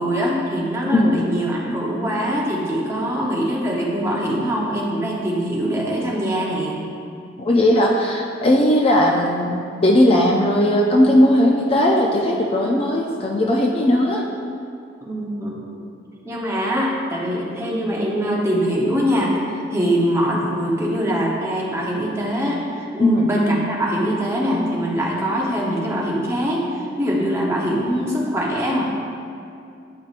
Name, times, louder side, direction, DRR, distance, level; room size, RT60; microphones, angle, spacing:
voice 1, 0.0-6.8 15.0-15.6 16.2-19.4 19.7-28.9, equal, 15° right, -4 dB, 0.8 m, -23 dB
voice 2, 7.4-14.2 23.0-23.3, left 1 dB, 30° left, 0 dB, 0.4 m, -17 dB
9.3 x 4.8 x 2.4 m, 2.5 s
head